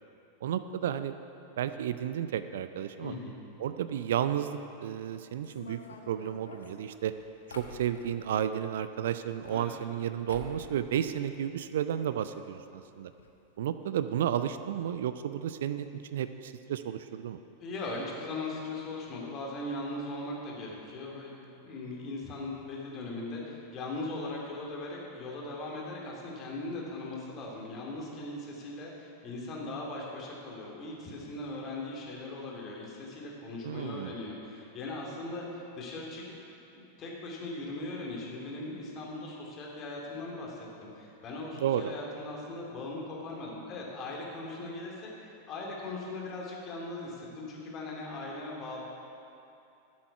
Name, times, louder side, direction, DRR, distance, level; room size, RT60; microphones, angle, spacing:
voice 1, 0.4-1.2 1.6-3.1 3.6-5.8 6.1-7.1 7.5-13.1 13.6-17.4 33.6-34.2 41.6-41.9, right 10 dB, 60° right, 11 dB, 0.4 m, -32 dB
voice 2, 3.0-3.4 9.5-9.7 17.6-36.4 36.7-48.8, left 2 dB, 30° left, -2 dB, 2.5 m, -39 dB
sound 1, 5.4-8.4 9.2-10.0 10.3-10.7 11.0-11.8 12.1-12.2 12.4-12.5 13.2-13.3 13.6-13.8, left 3 dB, 70° left, 1.0 m, -48 dB
12.5 x 7.6 x 5.7 m, 2.8 s
figure-of-eight pair, 90°, 0 cm